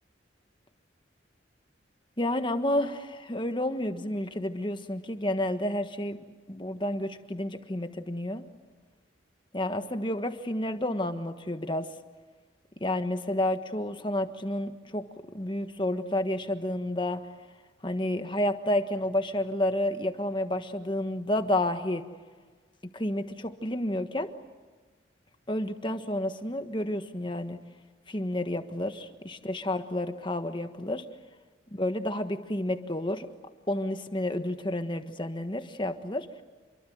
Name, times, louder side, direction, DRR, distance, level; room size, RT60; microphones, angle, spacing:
voice 1, 2.2-6.2 6.5-8.4 9.5-11.9 12.8-15.0 15.3-17.2 17.8-22.0 22.9-24.3 25.5-27.6 28.1-31.0 31.7-33.3 33.7-36.3, left 1 dB, 25° left, 8 dB, 1.4 m, -30 dB
28.0 x 23.0 x 7.9 m, 1.4 s
head